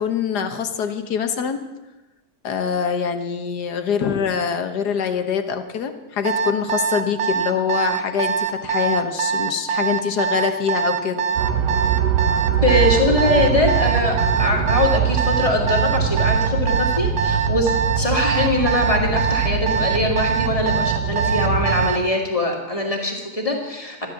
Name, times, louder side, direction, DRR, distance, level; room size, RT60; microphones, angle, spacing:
voice 1, 0.0-1.6 2.4-11.2, left 7 dB, 75° left, 7 dB, 1.7 m, -24 dB
Alarm, 6.2-22.1, right 7 dB, 40° right, 1.1 m, -23 dB
sound 1, 11.4-21.9, right 7 dB, 85° right, 1.3 m, -23 dB
voice 2, 12.6-24.1, left 2 dB, 20° left, 0 dB, 2.5 m, -22 dB
14.0 x 10.5 x 7.2 m, 1.1 s
omnidirectional pair, 1.8 m